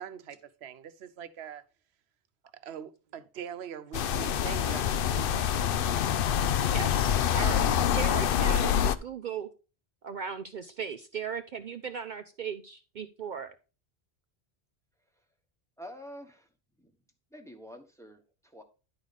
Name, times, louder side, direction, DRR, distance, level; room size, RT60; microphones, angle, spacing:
voice 1, 0.0-1.6 2.5-5.5, right 8 dB, 75° right, 1.0 m, -42 dB
sound 1, 3.9-9.0, left 9 dB, 65° left, 0.7 m, -26 dB
voice 2, 6.7-7.6 7.9-9.5 10.0-13.5, right 6 dB, 55° right, 0.6 m, -37 dB
voice 3, 15.8-16.5 16.8-16.9 17.3-18.6, equal, 5° left, 1.0 m, -47 dB
10.5 x 4.8 x 4.0 m
omnidirectional pair, 1.1 m